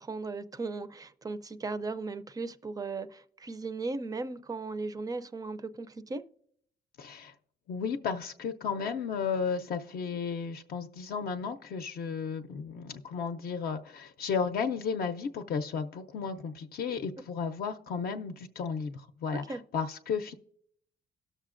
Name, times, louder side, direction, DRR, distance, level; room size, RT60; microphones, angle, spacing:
voice 1, 0.0-6.2 19.5-19.6, right 3 dB, 20° right, 12 dB, 0.4 m, -37 dB
voice 2, 7.0-7.3 7.7-20.3, left 6 dB, 60° left, 6 dB, 0.5 m, -34 dB
18.0 x 6.6 x 2.5 m, 0.68 s
cardioid pair, 140°, 17 cm